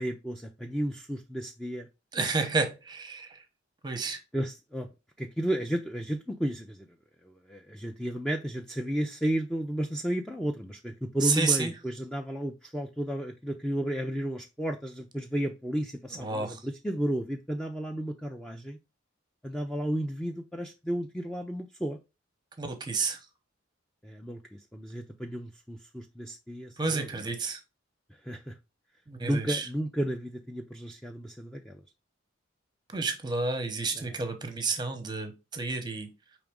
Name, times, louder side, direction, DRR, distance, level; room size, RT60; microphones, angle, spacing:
voice 1, 0.0-1.9 4.3-4.9 5.2-6.9 7.2-18.8 19.4-22.0 24.0-27.3 28.2-28.5 29.2-31.8 33.9-34.2, equal, 5° left, 0.4 m, -33 dB
voice 2, 2.1-3.3 3.8-4.2 11.2-11.7 16.1-16.6 22.6-23.2 26.8-27.6 29.1-29.7 32.9-36.1, right 4 dB, 20° right, 0.8 m, -30 dB
5.0 x 3.0 x 3.4 m
head